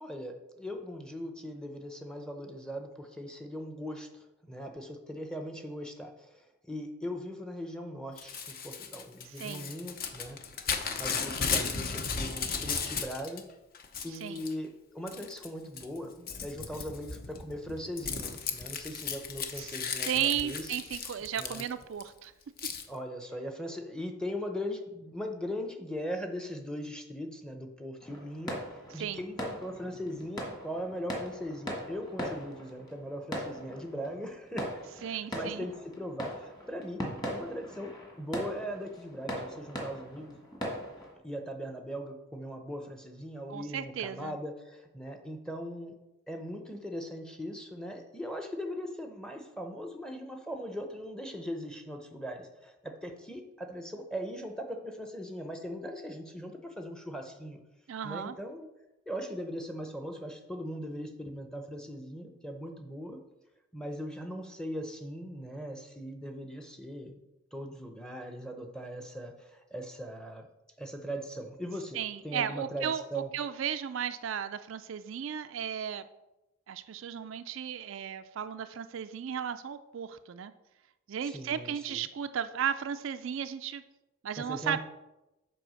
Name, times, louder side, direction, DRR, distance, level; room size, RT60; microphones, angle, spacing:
voice 1, 0.0-10.4 11.0-13.4 14.0-20.7 21.4-21.7 22.9-28.6 28.9-37.0 37.3-40.4 41.2-45.9 46.3-57.6 58.0-58.7 59.1-63.2 63.7-67.1 67.5-70.5 70.8-72.0 72.2-73.3 81.2-82.0 84.4-84.8, equal, 5° left, 4 dB, 0.7 m, -39 dB
Crumpling crinkling / Tearing, 8.2-13.4 13.7-14.5 15.1-15.5 15.8-22.0 22.6-22.8, left 5 dB, 45° left, 0.8 m, -35 dB
voice 2, 9.3-9.7 14.1-14.5 19.6-19.8 20.1-22.3 28.9-29.2 35.0-35.7 43.5-44.4 57.9-58.4 71.9-76.1 76.7-80.5 81.1-83.8 84.2-84.8, right 8 dB, 65° right, 10 dB, 0.4 m, -35 dB
sound 1, 28.0-41.1, equal, 20° left, 1.6 m, -40 dB
7.7 x 4.8 x 6.3 m, 0.98 s
head